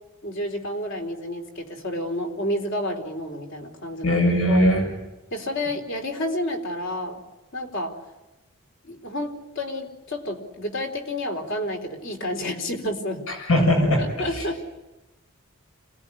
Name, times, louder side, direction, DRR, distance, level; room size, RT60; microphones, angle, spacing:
voice 1, 0.2-4.2 4.5-4.7 5.3-7.2 7.5-8.0 8.8-13.3 14.0-14.6, left 1 dB, 55° left, 4 dB, 3.9 m, -30 dB
voice 2, 4.0-4.8 13.3-14.0, equal, 75° left, 2 dB, 7.1 m, -19 dB
27.0 x 18.0 x 10.0 m, 1.0 s
head